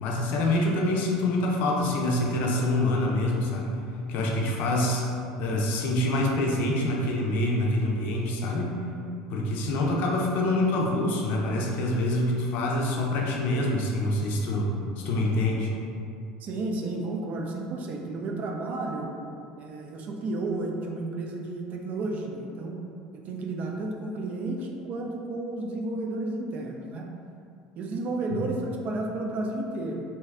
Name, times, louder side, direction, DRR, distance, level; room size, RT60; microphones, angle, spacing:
voice 1, 0.0-3.8 4.1-5.1 5.4-8.8 9.3-15.7 28.3-28.4, left 1 dB, 60° left, -1 dB, 0.5 m, -26 dB
voice 2, 16.4-19.1 19.6-22.8 23.1-27.1 27.8-30.2, right 2 dB, 50° right, 1 dB, 0.4 m, -32 dB
2.7 x 2.3 x 3.3 m, 2.5 s
supercardioid pair, 90°, 3 cm